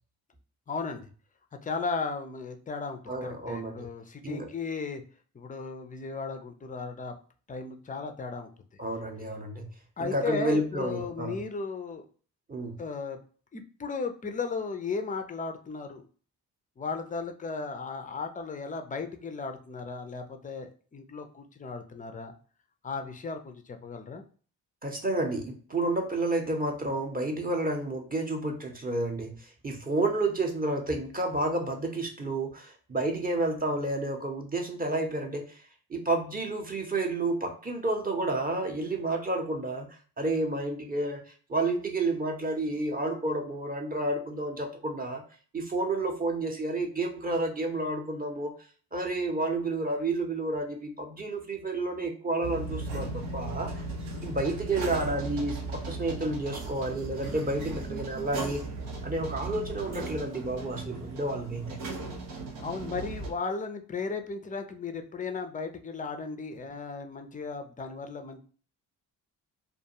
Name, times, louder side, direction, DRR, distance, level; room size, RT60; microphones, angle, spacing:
voice 1, 0.7-1.1 1.6-5.0 5.3-7.2 7.5-8.5 10.0-12.0 12.8-13.2 13.5-16.0 16.8-22.3 22.8-24.2 62.6-68.4, left 4 dB, 20° left, 6 dB, 0.4 m, -35 dB
voice 2, 3.1-3.9 4.2-4.5 8.8-9.7 10.0-11.4 12.5-12.8 24.8-35.6 35.9-41.2 41.5-45.2 45.5-48.5 48.9-53.7 54.2-58.6 59.0-61.8, right 2 dB, 20° right, 2 dB, 0.7 m, -30 dB
sound 1, 52.4-63.3, right 3 dB, 80° right, 0.8 m, -37 dB
2.6 x 2.2 x 2.8 m, 0.42 s
hypercardioid pair, 40°, 48 cm